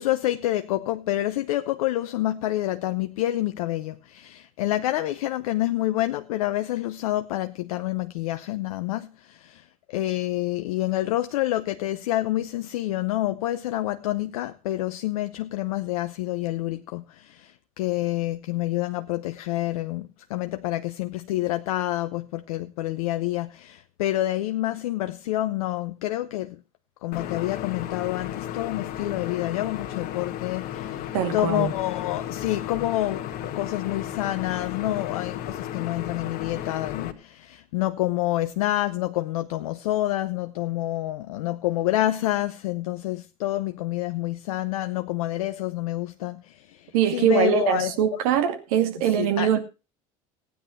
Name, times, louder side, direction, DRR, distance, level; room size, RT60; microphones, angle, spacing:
voice 1, 0.0-26.6 27.0-47.9 49.0-49.6, left 15 dB, 75° left, 0.7 m, -28 dB
sound 1, 27.1-37.1, left 11 dB, 55° left, 1.6 m, -34 dB
voice 2, 31.1-31.7 46.9-49.6, right 9 dB, 70° right, 2.3 m, -22 dB
16.0 x 9.5 x 4.4 m
hypercardioid pair, 70°, 19 cm